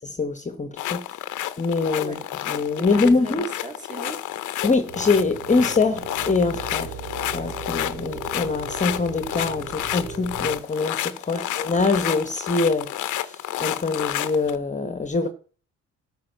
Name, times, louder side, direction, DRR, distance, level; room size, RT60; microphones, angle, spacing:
voice 1, 0.0-1.0 1.6-3.4 4.6-6.9 7.3-15.3, left 3 dB, 25° left, 1.1 m, -24 dB
sound 1, 0.8-14.6, left 13 dB, 80° left, 0.8 m, -30 dB
voice 2, 2.8-3.3 3.6-4.2 11.3-11.6, equal, 25° right, 3.0 m, -36 dB
sound 2, 4.9-10.6, right 5 dB, 75° right, 3.8 m, -37 dB
12.5 x 5.0 x 6.5 m
cardioid pair, 90°, 30 cm